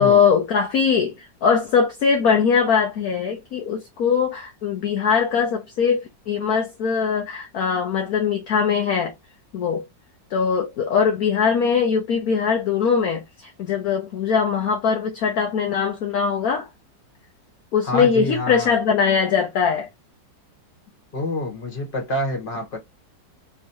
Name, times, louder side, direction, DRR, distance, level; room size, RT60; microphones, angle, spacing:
voice 1, 0.0-9.1 9.5-9.8 10.3-16.7 17.7-19.9, left 6 dB, 60° left, 1.2 m, -21 dB
voice 2, 17.8-18.7 21.1-22.8, left 1 dB, 30° left, 1.7 m, -27 dB
3.6 x 3.2 x 2.8 m
omnidirectional pair, 1.9 m